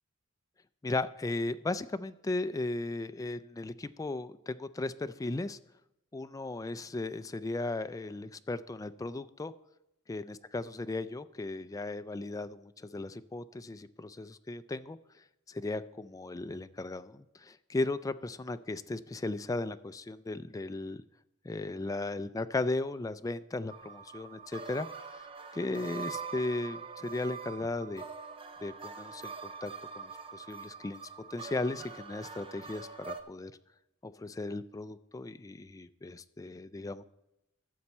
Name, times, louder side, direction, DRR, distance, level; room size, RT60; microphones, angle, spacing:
voice 1, 0.8-5.6 6.1-9.5 10.1-15.0 15.5-21.0 21.4-24.9 25.5-28.0 28.6-31.0 31.3-33.5 34.0-37.0, left 2 dB, 15° left, 12 dB, 0.3 m, -36 dB
sound 1, 23.7-33.2, right 5 dB, 25° right, 0.6 m, -44 dB
14.0 x 7.0 x 4.3 m, 0.88 s
head